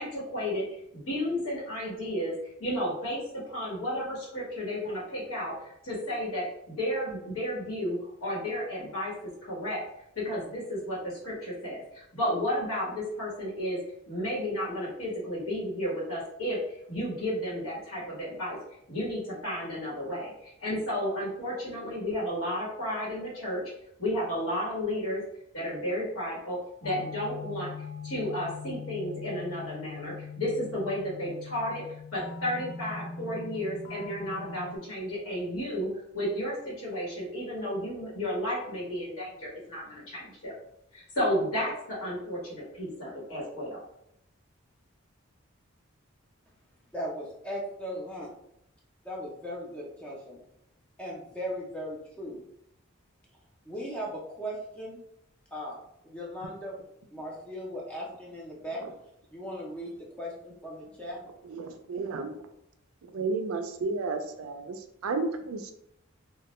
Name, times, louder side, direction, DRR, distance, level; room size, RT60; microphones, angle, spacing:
voice 1, 0.0-2.3 2.6-9.1 9.4-9.8 10.1-13.8 14.1-18.6 18.9-23.6 24.0-25.2 25.5-27.7 28.0-31.8 32.1-40.5 40.9-43.8, equal, 85° left, -7 dB, 1.1 m, -32 dB
sound 1, 26.8-34.8, left 5 dB, 70° left, 0.4 m, -41 dB
voice 2, 46.9-48.3 49.0-50.4 51.0-52.4 53.7-55.0 55.5-56.8 57.1-58.8 59.3-61.2, equal, 5° left, -4 dB, 0.4 m, -38 dB
voice 3, 61.5-62.4 63.1-65.7, right 3 dB, 80° right, 7 dB, 0.4 m, -32 dB
2.2 x 2.1 x 2.9 m, 0.79 s
head